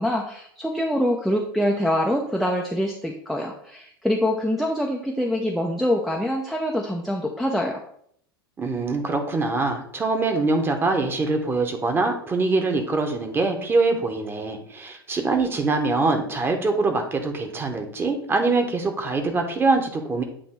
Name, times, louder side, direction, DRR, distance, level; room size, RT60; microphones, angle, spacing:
voice 1, 0.0-7.8, equal, ahead, -1 dB, 0.6 m, -25 dB
voice 2, 8.6-20.2, right 3 dB, 15° right, 4 dB, 1.1 m, -23 dB
8.6 x 3.0 x 4.5 m, 0.67 s
figure-of-eight pair, 85°, 13 cm